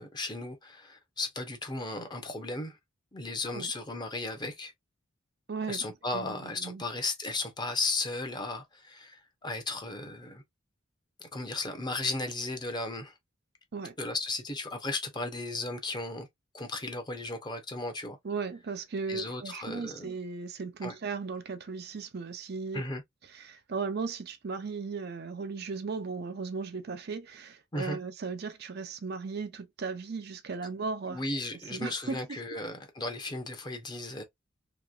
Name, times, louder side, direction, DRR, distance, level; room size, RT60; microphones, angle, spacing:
voice 1, 0.0-2.8 3.1-4.7 5.7-10.4 11.2-13.1 14.0-16.3 16.5-18.2 19.1-20.1 20.8-20.9 22.7-23.0 27.7-28.0 31.1-34.2, left 2 dB, 20° left, 0.7 m, -35 dB
voice 2, 5.5-5.9 6.1-6.8 13.7-14.0 18.2-22.8 23.3-31.2 31.7-32.4, right 4 dB, 50° right, 0.5 m, -36 dB
3.0 x 2.9 x 2.4 m
head